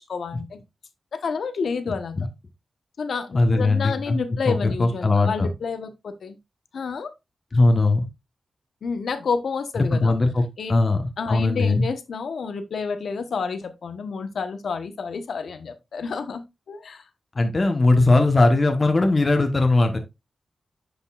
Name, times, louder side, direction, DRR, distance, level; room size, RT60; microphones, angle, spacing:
voice 1, 0.1-0.6 1.1-2.2 3.0-6.4 6.7-7.1 8.8-10.1 10.6-10.8 11.2-17.0, left 5 dB, 80° left, 1.1 m, -29 dB
voice 2, 3.3-4.2 4.5-5.5 7.5-8.1 9.9-11.0 11.3-11.9 17.3-20.0, left 2 dB, 35° left, 1.2 m, -19 dB
10.0 x 5.3 x 2.4 m
wide cardioid pair, 90°, 0 cm